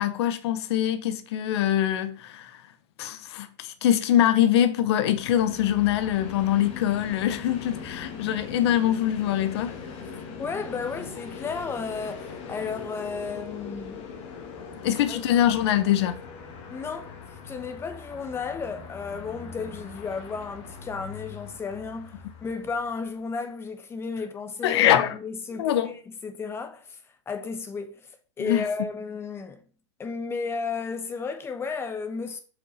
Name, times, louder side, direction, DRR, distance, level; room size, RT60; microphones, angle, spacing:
voice 1, 0.0-2.6 3.0-9.7 14.8-16.2 24.6-25.1 25.6-25.9 28.4-28.6, left 11 dB, 60° left, 0.8 m, -23 dB
Train, 5.0-23.1, left 5 dB, 40° left, 1.6 m, -41 dB
voice 2, 10.4-14.1 14.8-15.2 16.7-17.2 17.4-27.0 27.3-28.1 28.4-29.6 30.0-32.4, left 5 dB, 15° left, 0.9 m, -33 dB
6.3 x 5.1 x 4.1 m
hypercardioid pair, 130°, 16 cm